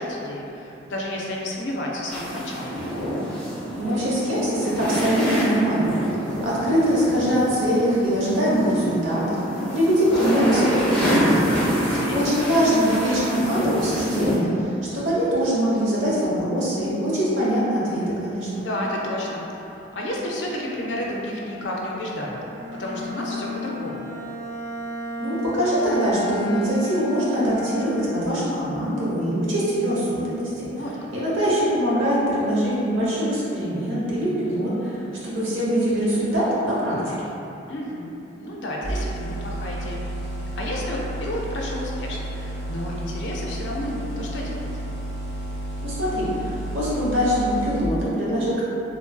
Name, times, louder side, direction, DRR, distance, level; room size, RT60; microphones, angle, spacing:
voice 1, 0.0-3.0 11.7-12.2 18.5-24.1 30.8-31.1 37.7-40.3 40.6-44.7, left 1 dB, 70° left, -3 dB, 0.4 m, -31 dB
sound 1, 2.1-14.4, equal, 5° left, 0.6 m, -26 dB
voice 2, 3.8-6.0 6.4-9.4 9.7-11.6 12.1-18.6 25.2-30.7 31.1-35.0 35.3-37.3 45.8-48.6, equal, 90° right, -8 dB, 0.9 m, -23 dB
Bowed string instrument, 22.5-28.5, equal, 65° right, 0.4 m, -34 dB
sound 2, 38.8-47.8, right 1 dB, 35° left, 0.9 m, -31 dB
3.0 x 2.5 x 2.2 m, 2.9 s
head